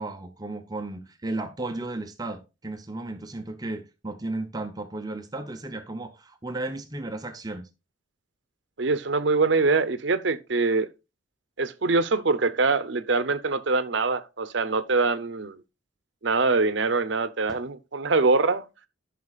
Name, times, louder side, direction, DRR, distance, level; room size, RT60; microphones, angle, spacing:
voice 1, 0.0-7.7 17.5-17.6, right 2 dB, 20° right, 0.6 m, -34 dB
voice 2, 8.8-10.9 11.6-15.6 16.2-18.6, right 3 dB, 65° right, 0.7 m, -24 dB
13.5 x 5.9 x 2.4 m
head